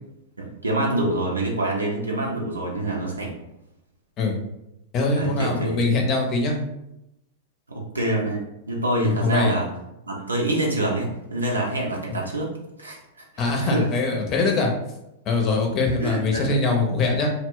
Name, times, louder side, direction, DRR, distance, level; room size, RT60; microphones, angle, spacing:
voice 1, 0.4-3.3 5.1-5.9 7.7-8.4 8.7-9.7 10.1-12.5 12.8-13.2 13.6-13.9 16.0-16.6, right 1 dB, 85° right, -2 dB, 0.5 m, -26 dB
voice 2, 4.9-6.6 9.0-9.5 13.4-14.7 15.3-17.3, left 3 dB, 35° left, 1 dB, 0.6 m, -22 dB
2.2 x 2.1 x 3.7 m, 0.87 s
figure-of-eight pair, 100°, 0 cm